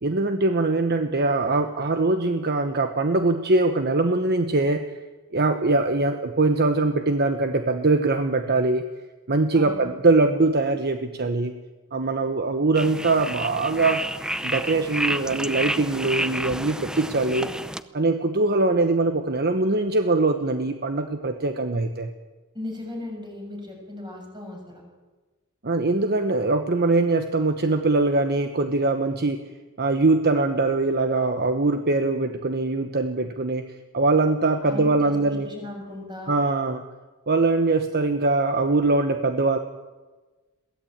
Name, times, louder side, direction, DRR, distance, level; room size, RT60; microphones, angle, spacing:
voice 1, 0.0-4.8 5.3-8.9 9.3-11.5 11.9-14.0 14.4-17.5 17.9-22.1 25.6-29.4 29.8-33.6 33.9-35.5 36.3-36.8 37.3-39.6, right 3 dB, 45° right, 7 dB, 1.2 m, -22 dB
voice 2, 9.5-9.9 22.5-24.8 34.6-36.3, left 1 dB, 20° right, 1 dB, 6.9 m, -36 dB
sound 1, 12.7-17.8, right 1 dB, 5° right, 0.7 m, -30 dB
22.5 x 16.5 x 8.8 m, 1.3 s
head